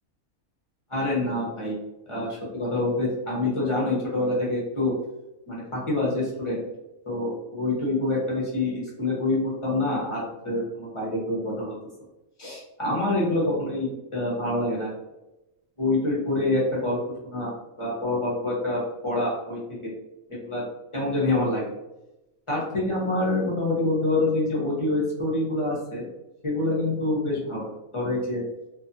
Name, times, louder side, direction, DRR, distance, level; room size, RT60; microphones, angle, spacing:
voice 1, 0.9-1.8 2.1-4.9 5.5-6.6 7.0-11.8 12.4-14.9 15.8-17.0 17.2-17.5 17.8-19.9 20.3-20.6 20.9-21.7 22.5-26.1 26.4-28.4, left 2 dB, 30° left, -6 dB, 0.5 m, -26 dB
2.4 x 2.3 x 2.6 m, 0.97 s
omnidirectional pair, 1.5 m